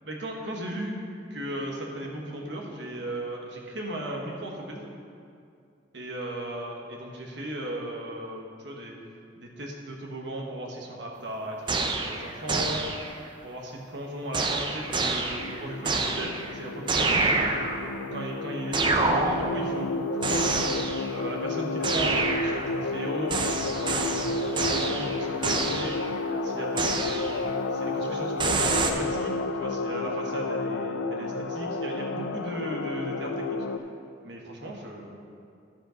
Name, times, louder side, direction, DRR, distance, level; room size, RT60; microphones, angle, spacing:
voice 1, 0.0-1.0 1.3-4.9 5.9-9.0 9.3-12.8 13.4-17.5 18.1-20.7 21.1-25.9 26.4-27.2 27.7-33.6 34.2-35.1, right 1 dB, 65° right, 0 dB, 1.4 m, -36 dB
sound 1, 11.7-13.3 14.3-16.6 16.9-18.0 18.7-19.8 20.2-21.2 21.8-22.9 23.3-26.1 26.8-27.5 28.4-28.9, right 3 dB, 25° right, 0.5 m, -27 dB
sound 2, 15.3-33.8, left 3 dB, 85° left, 0.4 m, -31 dB
12.5 x 5.2 x 5.1 m, 2.4 s
head